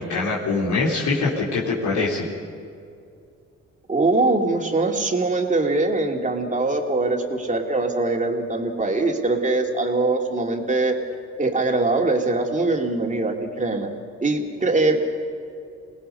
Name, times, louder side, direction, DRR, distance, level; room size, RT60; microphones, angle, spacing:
voice 1, 0.0-2.3, left 3 dB, 70° left, -5 dB, 3.6 m, -23 dB
voice 2, 3.9-11.0 11.4-13.9 14.2-15.1, right 2 dB, 25° right, 2 dB, 2.6 m, -22 dB
27.5 x 19.0 x 5.4 m, 2.4 s
cardioid pair, 90°, 30 cm